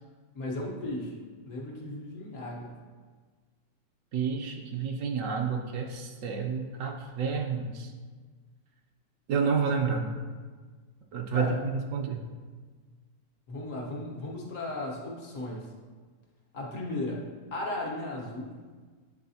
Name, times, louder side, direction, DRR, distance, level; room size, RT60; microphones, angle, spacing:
voice 1, 0.3-2.7 11.3-11.6 13.5-15.7 16.5-17.2 17.5-18.5, left 2 dB, 65° left, -2 dB, 1.4 m, -36 dB
voice 2, 4.1-7.9 9.3-10.1 11.1-12.2, right 5 dB, 65° right, 2 dB, 0.9 m, -30 dB
9.5 x 4.0 x 2.7 m, 1.5 s
omnidirectional pair, 1.5 m